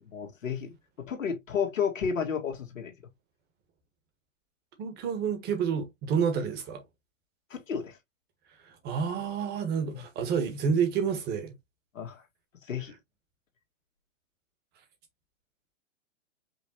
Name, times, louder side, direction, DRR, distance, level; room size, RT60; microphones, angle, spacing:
voice 1, 0.0-2.9 7.5-8.0 9.9-10.0 11.9-12.2 12.6-12.9, left 6 dB, 85° left, 1.8 m, -32 dB
voice 2, 4.8-6.8 8.6-11.5, right 6 dB, 25° right, 1.5 m, -29 dB
5.4 x 3.1 x 2.8 m
hypercardioid pair, 135°, 38 cm